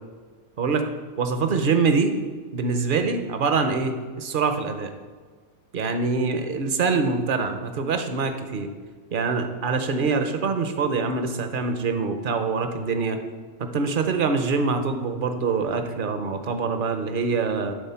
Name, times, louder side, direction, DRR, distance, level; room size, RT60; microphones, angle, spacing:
voice 1, 0.6-0.9 1.2-2.1 2.5-4.9 5.7-8.7 9.1-13.2 13.6-17.7, right 4 dB, 50° right, 7 dB, 0.6 m, -24 dB
11.5 x 4.1 x 5.6 m, 1.5 s
omnidirectional pair, 1.6 m